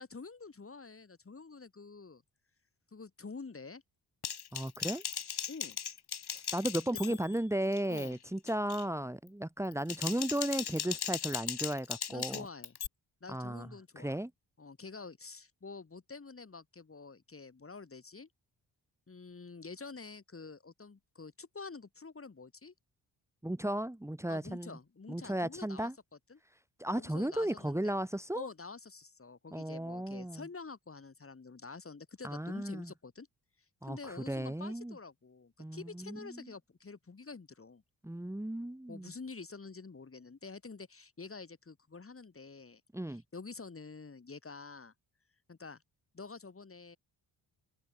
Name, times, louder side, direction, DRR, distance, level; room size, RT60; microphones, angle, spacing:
voice 1, 0.0-2.2 2.9-3.8 5.5-5.8 7.1-7.2 7.9-8.2 12.1-12.8 13.2-14.2 14.6-18.3 19.1-22.7 24.3-25.9 26.3-26.4 27.0-27.9 28.3-33.3 33.8-37.8 38.9-42.8 43.1-44.9 45.5-45.8 46.1-47.0, left 4 dB, 30° left, 3.6 m, -48 dB
Typing, 4.2-7.4 7.7-8.1 8.5-8.8 9.6-12.9, left 8 dB, 55° left, 3.7 m, -38 dB
voice 2, 4.5-5.0 6.3-12.5 13.3-13.7 14.0-14.3 23.4-24.8 25.1-25.9 26.8-28.5 29.5-30.4 32.2-32.9 33.8-35.0 35.6-36.5 38.0-39.1 42.9-43.2, right 1 dB, 5° right, 2.2 m, -35 dB
cardioid pair, 100°, 45 cm